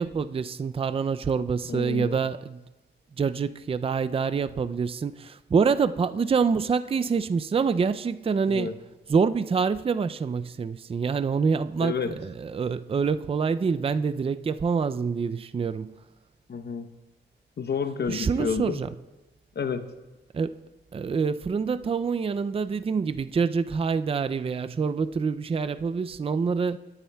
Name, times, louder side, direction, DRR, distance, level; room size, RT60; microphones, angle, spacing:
voice 1, 0.0-2.6 3.2-8.7 9.1-15.9 18.1-18.9 20.3-20.6 20.9-26.8, right 5 dB, 30° right, 0.4 m, -26 dB
voice 2, 1.6-2.2 8.5-8.7 11.8-12.1 16.5-16.9 17.6-18.8 19.5-19.9, left 6 dB, 55° left, 0.8 m, -30 dB
19.0 x 9.3 x 2.3 m
cardioid pair, 65°, 20 cm